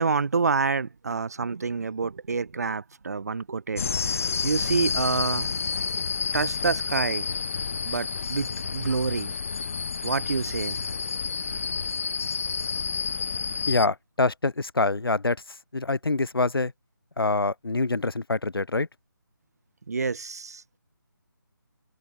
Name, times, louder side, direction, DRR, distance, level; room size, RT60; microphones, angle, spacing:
voice 1, 0.0-5.5 6.3-7.2 7.8-9.3 10.0-10.8 19.9-20.6, right 4 dB, 45° right, 1.6 m, -28 dB
sound 1, 3.8-13.9, left 5 dB, 35° left, 3.3 m, -29 dB
voice 2, 13.6-15.4 15.7-16.7 17.2-18.9, left 3 dB, 85° left, 2.9 m, -25 dB
figure-of-eight pair, 175°, 12 cm